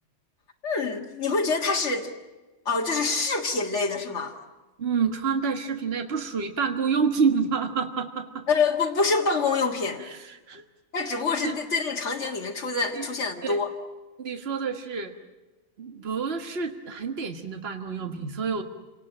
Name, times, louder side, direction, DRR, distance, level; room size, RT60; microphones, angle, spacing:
voice 1, 0.6-2.1 2.7-4.4 8.5-10.0 10.9-13.7, left 4 dB, 70° left, 0 dB, 2.2 m, -26 dB
voice 2, 4.8-8.4 10.0-10.6 11.4-11.5 12.9-13.1 13.4-13.6 14.2-15.1 15.8-18.6, right 5 dB, 55° right, 5 dB, 1.8 m, -28 dB
28.5 x 19.0 x 10.0 m, 1.2 s
omnidirectional pair, 1.3 m